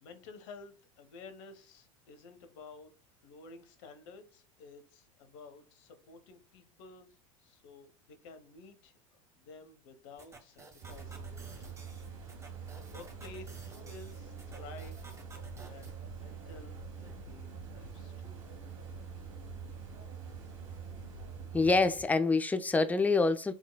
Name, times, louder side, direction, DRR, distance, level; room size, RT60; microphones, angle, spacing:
voice 1, 0.0-2.9 3.2-8.9 9.4-11.8 12.9-15.0 15.6-18.5, left 4 dB, 65° left, 1.1 m, -52 dB
sound 1, 10.2-15.9, right 3 dB, 15° right, 1.2 m, -54 dB
sound 2, 10.8-21.9, right 6 dB, 70° right, 1.4 m, -45 dB
voice 2, 21.5-23.5, left 3 dB, 10° left, 0.5 m, -26 dB
4.5 x 3.9 x 2.2 m
hypercardioid pair, 85°, 17 cm